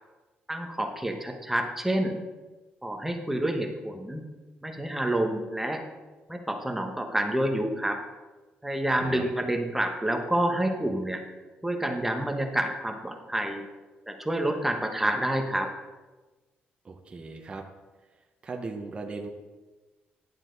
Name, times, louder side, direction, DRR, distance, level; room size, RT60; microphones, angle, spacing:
voice 1, 0.5-2.2 2.8-4.2 4.6-5.8 6.3-8.0 8.6-11.2 11.6-13.6 14.1-15.7, right 1 dB, 5° right, 3 dB, 1.1 m, -28 dB
voice 2, 8.9-9.2 16.8-17.6 18.4-19.3, right 3 dB, 25° right, 2 dB, 0.9 m, -38 dB
11.0 x 7.3 x 4.0 m, 1.2 s
cardioid pair, 115°, 4 cm